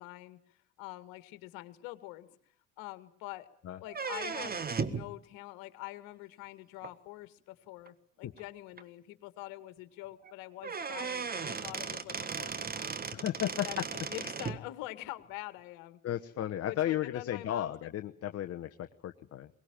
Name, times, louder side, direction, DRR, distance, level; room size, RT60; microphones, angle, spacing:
voice 1, 0.0-2.4 2.8-3.5 3.8-13.1 13.4-13.8 14.1-16.0 16.7-17.9, left 18 dB, 60° left, 12 dB, 2.0 m, -45 dB
sound 1, 3.9-5.1 6.8-6.9 7.9-8.0 8.4-8.5 8.8-8.9 10.2-10.3 10.6-14.6, right 5 dB, 25° right, 1.6 m, -36 dB
voice 2, 13.1-13.8 16.0-19.5, left 12 dB, 35° left, 7 dB, 1.2 m, -34 dB
22.5 x 20.0 x 8.9 m, 0.63 s
hypercardioid pair, 70°, 39 cm